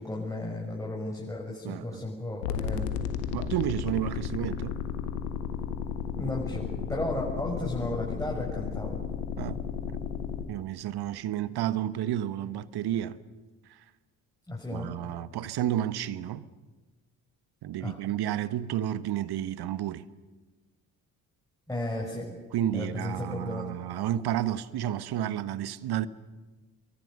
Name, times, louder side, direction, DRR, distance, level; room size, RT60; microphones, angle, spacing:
voice 1, 0.0-2.9 6.2-9.0 14.5-15.0 17.8-18.0 21.7-22.4 22.7-23.7, left 1 dB, 5° left, 6.9 m, -34 dB
voice 2, 1.6-2.1 3.3-4.8 9.4-9.6 10.5-13.2 14.7-16.5 17.6-20.0 22.5-26.1, right 11 dB, 50° right, 1.2 m, -31 dB
sound 1, 2.4-10.4, left 8 dB, 75° left, 1.6 m, -33 dB
30.0 x 23.5 x 6.7 m
figure-of-eight pair, 45°, 48 cm